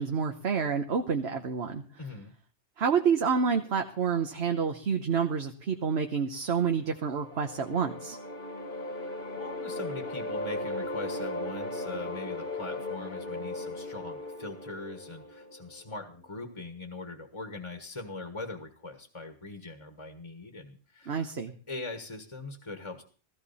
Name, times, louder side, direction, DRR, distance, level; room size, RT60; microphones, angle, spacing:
voice 1, 0.0-1.8 2.8-8.2 21.1-21.5, right 6 dB, 65° right, 5 dB, 1.3 m, -28 dB
voice 2, 2.0-2.3 8.9-21.3 21.7-23.0, left 3 dB, 30° left, 6 dB, 1.5 m, -41 dB
sound 1, 6.8-16.0, left 2 dB, 50° left, 1.8 m, -37 dB
15.5 x 15.0 x 4.2 m, 0.39 s
omnidirectional pair, 1.1 m